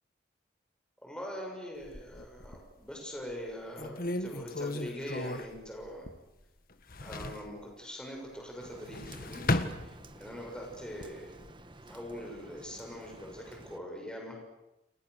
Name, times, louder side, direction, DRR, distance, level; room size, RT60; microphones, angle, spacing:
voice 1, 1.0-6.1 7.0-9.5 9.8-11.4 11.9-14.4, equal, 5° left, 0 dB, 6.7 m, -42 dB
sound 1, 1.8-2.8 3.3-3.4 3.8-6.4 6.7-7.5 8.7-10.4 10.9-11.5, left 2 dB, 55° left, 1.7 m, -35 dB
Rain, 8.6-13.8, right 2 dB, 30° right, 1.9 m, -52 dB
29.5 x 29.5 x 6.8 m, 0.94 s
head